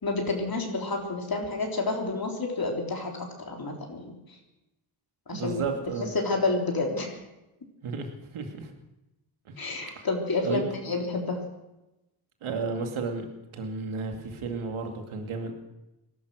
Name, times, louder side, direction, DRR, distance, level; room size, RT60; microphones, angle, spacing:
voice 1, 0.0-3.1 3.4-4.2 5.3-5.6 6.1-7.2 9.6-11.4, left 3 dB, 45° left, 1 dB, 3.7 m, -29 dB
voice 2, 5.3-6.1 7.8-8.7 9.5-9.6 10.0-10.1 10.4-10.6 12.4-13.3 13.5-15.5, right 4 dB, 85° right, 4 dB, 2.4 m, -33 dB
19.0 x 12.0 x 6.3 m, 0.97 s
cardioid pair, 50°, 48 cm